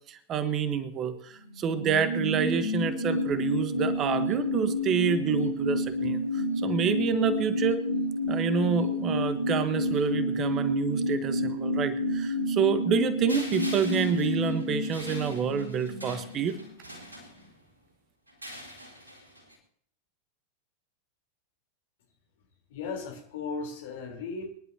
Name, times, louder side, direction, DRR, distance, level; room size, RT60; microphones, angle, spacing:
voice 1, 0.1-7.8 8.3-16.6, right 7 dB, 30° right, 12 dB, 1.1 m, -28 dB
sound 1, 1.5-16.7 17.0-17.1, left 1 dB, 45° right, 3.3 m, -29 dB
sound 2, 13.3-17.7 18.3-19.6, equal, 80° right, 4.1 m, -44 dB
voice 2, 22.7-24.5, left 4 dB, 55° left, 3 dB, 3.6 m, -36 dB
24.5 x 11.0 x 2.8 m, 0.63 s
figure-of-eight pair, 90°, 0 cm